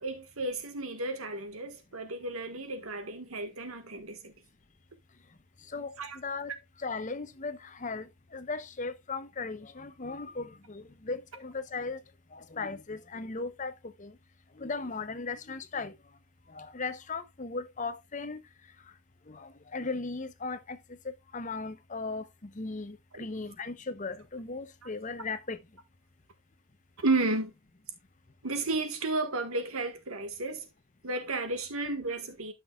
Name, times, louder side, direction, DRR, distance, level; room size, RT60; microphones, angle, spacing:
voice 1, 0.0-4.3 6.0-6.2 23.1-23.2 27.0-27.5 28.4-30.7 31.0-32.5, right 2 dB, 85° right, 1.6 m, -32 dB
voice 2, 5.7-6.5 6.8-12.0 12.3-13.7 14.0-14.1 14.6-15.9 16.5-18.4 19.3-20.8 21.0-25.6, left 3 dB, 35° left, 0.7 m, -37 dB
12.5 x 5.9 x 2.3 m
head